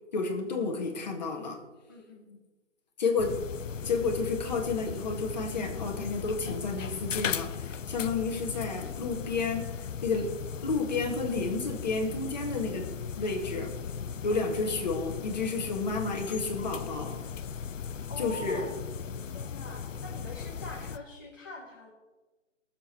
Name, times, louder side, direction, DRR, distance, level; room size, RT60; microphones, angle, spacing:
voice 1, 0.1-1.6 3.0-3.4 3.8-9.7 10.0-10.3 10.6-12.9 13.2-13.7 14.2-17.2 18.2-18.7, left 4 dB, 35° left, 2 dB, 2.0 m, -31 dB
voice 2, 1.9-2.4 10.5-10.7 14.3-14.5 18.1-18.6 19.2-21.9, left 2 dB, 15° left, -5 dB, 0.9 m, -44 dB
sound 1, 3.2-21.0, left 7 dB, 85° left, 0.8 m, -38 dB
16.5 x 7.5 x 6.1 m, 1.2 s
hypercardioid pair, 175°, 37 cm